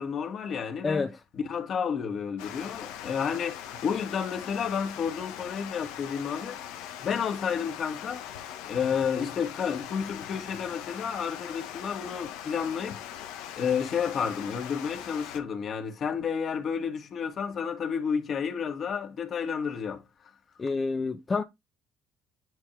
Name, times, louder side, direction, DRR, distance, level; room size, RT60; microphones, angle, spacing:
voice 1, 0.0-13.0 13.6-20.0, left 7 dB, 55° left, 2.1 m, -31 dB
Water, 2.4-15.4, left 10 dB, 85° left, 1.3 m, -41 dB
voice 2, 20.6-21.4, left 4 dB, 30° left, 0.9 m, -28 dB
10.5 x 4.4 x 3.3 m
supercardioid pair, 70°, 0 cm